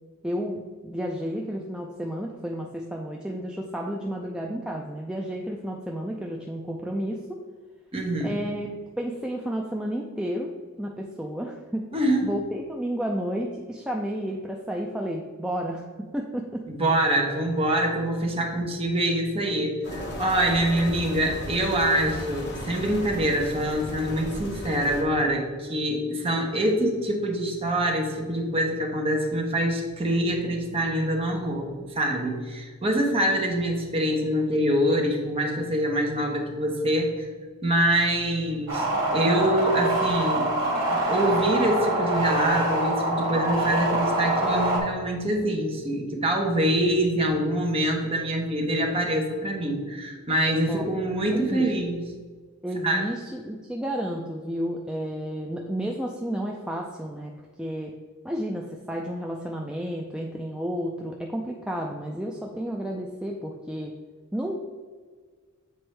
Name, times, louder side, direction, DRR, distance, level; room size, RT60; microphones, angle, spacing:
voice 1, 0.2-7.4 8.2-8.7 9.0-10.5 10.8-11.9 12.2-15.8 16.1-16.6 50.7-50.9 51.3-51.7 52.6-57.3 57.6-57.9 58.2-63.9 64.3-64.6, equal, 5° right, 0 dB, 0.3 m, -31 dB
voice 2, 7.9-8.4 11.9-12.3 16.7-31.7 31.9-37.3 37.6-38.9 39.1-40.5 40.9-52.0 52.8-53.0, right 1 dB, 25° right, 0 dB, 1.0 m, -25 dB
sound 1, 19.8-25.0, left 1 dB, 50° left, 1.1 m, -36 dB
sound 2, 38.7-44.8, right 1 dB, 60° right, 1.8 m, -25 dB
7.8 x 4.3 x 3.2 m, 1.6 s
head